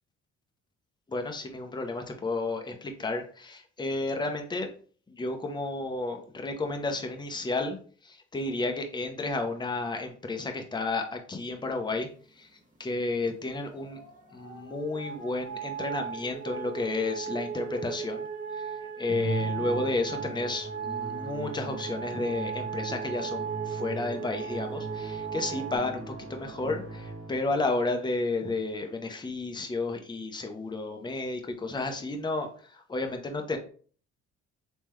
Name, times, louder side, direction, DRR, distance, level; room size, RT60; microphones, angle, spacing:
voice 1, 1.1-4.7 5.1-7.8 8.0-12.1 12.4-12.5 12.8-14.0 14.3-18.2 18.6-18.7 19.0-33.6, left 3 dB, 15° left, 4 dB, 0.7 m, -32 dB
sound 1, 13.2-25.8, right 7 dB, 25° right, 1.2 m, -37 dB
Musical instrument, 19.1-27.6, right 3 dB, 45° right, 1.2 m, -39 dB
3.7 x 3.1 x 3.0 m, 0.43 s
cardioid pair, 90°, 30 cm